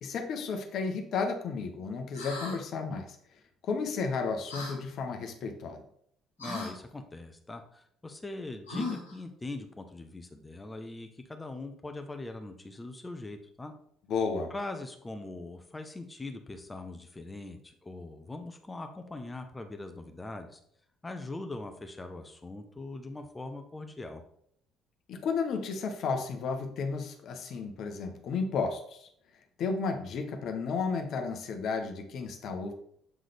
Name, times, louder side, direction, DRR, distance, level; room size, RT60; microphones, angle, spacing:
voice 1, 0.0-3.2 3.6-5.8 14.1-14.5 25.1-29.1 29.6-32.7, left 4 dB, 55° left, 5 dB, 0.9 m, -33 dB
sound 1, 2.1-2.6 4.5-4.8 6.4-6.7 8.7-9.2, left 3 dB, 90° left, 1.2 m, -36 dB
voice 2, 6.4-13.7 14.5-20.6 21.0-24.2, left 2 dB, 20° left, 6 dB, 0.8 m, -41 dB
8.1 x 3.8 x 3.3 m, 0.68 s
hypercardioid pair, 50°, 0 cm